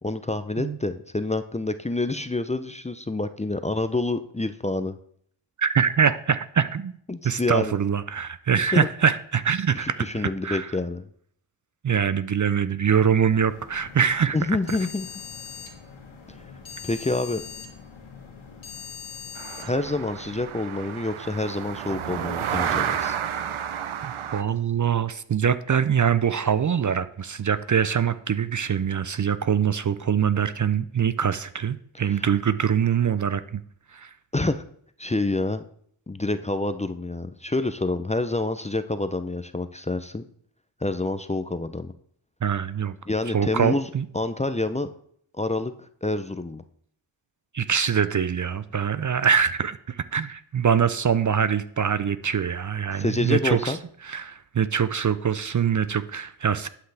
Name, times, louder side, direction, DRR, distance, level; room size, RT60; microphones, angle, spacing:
voice 1, 0.0-5.0 7.1-7.7 8.7-8.9 9.8-11.1 14.3-15.1 16.8-17.4 19.6-23.2 32.1-32.2 34.3-34.6 35.0-35.6 36.1-40.2 40.8-41.9 43.1-43.9 44.1-44.9 45.4-46.6 52.9-53.8, left 2 dB, 15° left, 11 dB, 0.5 m, -27 dB
voice 2, 5.6-7.0 7.2-10.7 11.8-14.4 24.0-33.6 33.9-34.1 42.4-43.0 43.3-44.0 47.5-53.8 54.0-56.7, right 7 dB, 40° right, 14 dB, 0.5 m, -24 dB
sound 1, 13.2-20.5, left 6 dB, 75° left, 2.0 m, -42 dB
sound 2, 19.3-24.4, right 9 dB, 80° right, 0.8 m, -31 dB
11.5 x 5.7 x 3.4 m, 0.62 s
cardioid pair, 45°, 48 cm